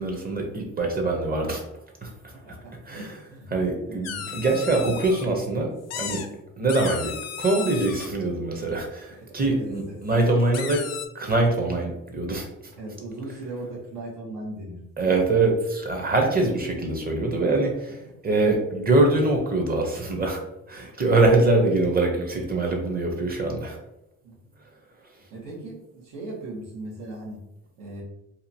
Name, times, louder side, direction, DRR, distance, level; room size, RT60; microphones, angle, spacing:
voice 1, 0.0-1.6 2.0-2.1 2.9-3.0 3.5-5.7 6.0-6.2 6.6-7.1 7.4-10.8 11.1-12.4 15.0-18.0 18.2-20.4 20.7-23.8, right 2 dB, 30° right, 2 dB, 0.7 m, -23 dB
voice 2, 2.3-3.6 3.9-4.1 6.6-6.7 9.1-10.0 12.8-15.5 18.1-18.2 24.2-24.5 25.3-27.4 27.8-28.0, right 2 dB, 90° right, -5 dB, 1.1 m, -39 dB
sound 1, 4.0-5.3 5.9-6.3 6.7-8.1 10.1-10.2 10.5-11.1, left 8 dB, 55° left, 0.4 m, -34 dB
2.8 x 2.4 x 2.7 m, 0.87 s
cardioid pair, 90°, 31 cm